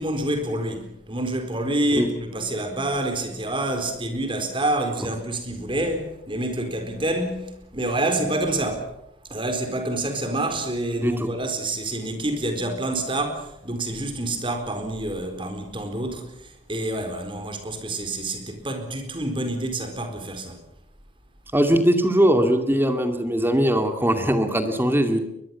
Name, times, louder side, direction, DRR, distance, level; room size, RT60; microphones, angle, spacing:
voice 1, 0.0-8.9 9.3-16.3 16.7-20.6, right 1 dB, 30° right, 4.3 m, -27 dB
voice 2, 11.0-11.3 21.5-25.2, equal, 10° right, 2.4 m, -20 dB
23.0 x 21.5 x 7.2 m
head